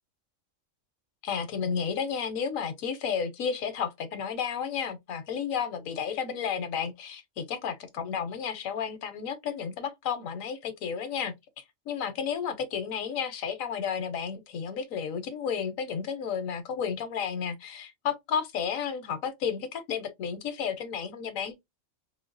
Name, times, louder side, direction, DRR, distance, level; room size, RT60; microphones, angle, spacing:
voice 1, 1.2-11.3 11.9-21.5, left 7 dB, 85° left, 1.1 m, -32 dB
3.9 x 2.1 x 2.5 m
omnidirectional pair, 1.4 m